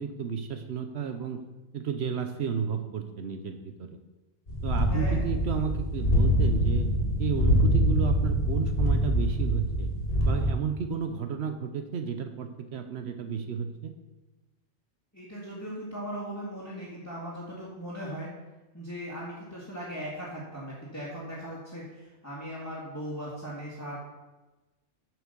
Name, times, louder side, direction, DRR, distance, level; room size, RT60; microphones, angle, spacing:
voice 1, 0.0-1.4 1.7-3.9 4.6-6.9 7.2-9.9 10.3-13.9, right 7 dB, 70° right, 7 dB, 0.9 m, -32 dB
sound 1, 4.5-10.5, equal, 50° left, 2.2 m, -25 dB
voice 2, 4.9-5.2 15.1-18.3 18.7-24.0, equal, 15° left, -8 dB, 1.9 m, -38 dB
7.6 x 5.9 x 6.7 m, 1.1 s
omnidirectional pair, 1.2 m